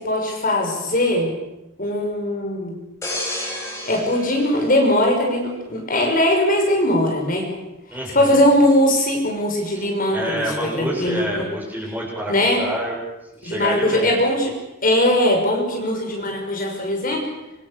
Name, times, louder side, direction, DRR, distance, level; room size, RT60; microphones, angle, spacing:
voice 1, 0.0-1.3 1.8-2.7 3.3-7.5 8.1-11.4 12.3-12.6 13.4-14.5 14.8-17.2, left 1 dB, 45° left, 1 dB, 6.0 m, -20 dB
sound 1, 3.0-5.7 6.2-6.4, left 1 dB, 15° left, 7.3 m, -32 dB
voice 2, 7.9-8.4 9.7-13.0 13.4-14.1, right 1 dB, 10° right, -2 dB, 7.9 m, -28 dB
26.0 x 25.5 x 6.8 m, 0.96 s
head